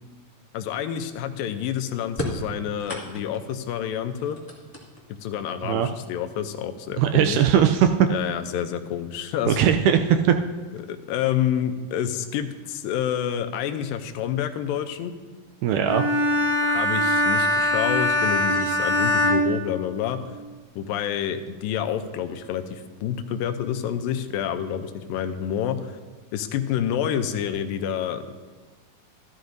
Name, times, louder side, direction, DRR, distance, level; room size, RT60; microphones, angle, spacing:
voice 1, 0.5-4.4 5.2-7.4 8.1-9.6 10.9-15.1 16.6-20.2 20.8-26.0 26.3-28.3, left 9 dB, 90° left, 8 dB, 2.4 m, -28 dB
sound 1, 2.1-3.5 4.1-5.3 6.3-6.4 7.4-7.5 8.0-8.4, left 1 dB, 15° left, 0.6 m, -34 dB
voice 2, 7.0-7.9 9.5-10.4 15.6-16.1, right 9 dB, 80° right, 7 dB, 1.9 m, -19 dB
Bowed string instrument, 15.9-20.4, left 1 dB, 50° right, 0.5 m, -22 dB
14.0 x 13.0 x 2.6 m, 1.3 s
omnidirectional pair, 4.0 m